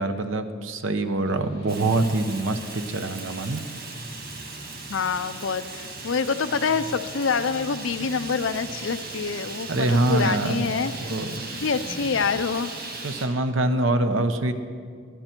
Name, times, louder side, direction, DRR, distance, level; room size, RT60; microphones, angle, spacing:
voice 1, 0.0-3.6 9.7-10.6 11.0-11.5 13.0-14.5, right 2 dB, 75° right, 9 dB, 0.9 m, -24 dB
sound 1, 1.3-12.4, equal, 25° left, 3.6 m, -43 dB
Fire, 1.7-13.3, right 3 dB, 50° right, 1.6 m, -38 dB
voice 2, 4.9-10.9 11.5-12.7, left 5 dB, 70° left, 12 dB, 0.6 m, -26 dB
19.5 x 11.5 x 4.5 m, 2.1 s
head